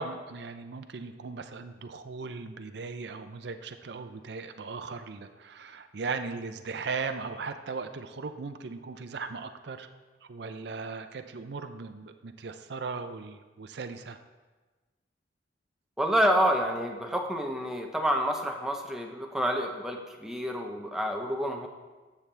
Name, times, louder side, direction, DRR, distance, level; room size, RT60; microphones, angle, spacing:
voice 1, 0.0-9.9 10.3-14.2, right 4 dB, 60° right, 8 dB, 0.5 m, -38 dB
voice 2, 16.0-21.7, equal, 5° right, 2 dB, 0.7 m, -28 dB
13.0 x 6.9 x 3.3 m, 1.3 s
head